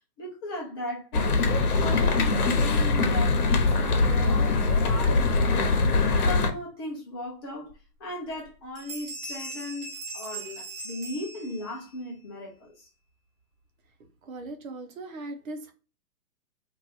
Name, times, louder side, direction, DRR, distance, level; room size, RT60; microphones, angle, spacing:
voice 1, 0.2-1.4 1.8-5.8 6.3-7.7 8.0-12.9, left 1 dB, 15° left, 0.6 m, -37 dB
sound 1, 1.1-6.5, left 3 dB, 65° left, 0.9 m, -22 dB
Bell, 7.7-7.8 8.2-8.5 8.7-11.9, right 2 dB, 40° right, 1.4 m, -39 dB
voice 2, 14.2-15.7, right 2 dB, 60° right, 1.0 m, -39 dB
2.9 x 2.6 x 4.1 m
hypercardioid pair, 145°, 48 cm